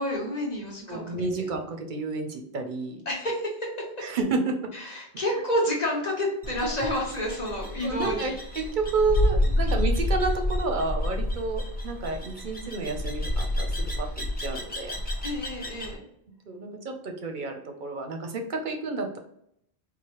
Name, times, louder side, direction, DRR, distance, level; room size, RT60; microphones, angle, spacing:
voice 1, 0.0-1.0 1.4-1.5 3.1-3.7 4.7-8.3 9.6-9.8 15.2-16.0, left 1 dB, 40° left, -3 dB, 1.0 m, -29 dB
voice 2, 0.9-3.0 4.0-4.6 7.8-15.0 16.5-19.2, right 3 dB, 55° right, 5 dB, 0.7 m, -30 dB
sound 1, 6.4-15.9, left 1 dB, 10° left, 0.8 m, -29 dB
4.7 x 2.1 x 2.9 m, 0.73 s
omnidirectional pair, 1.1 m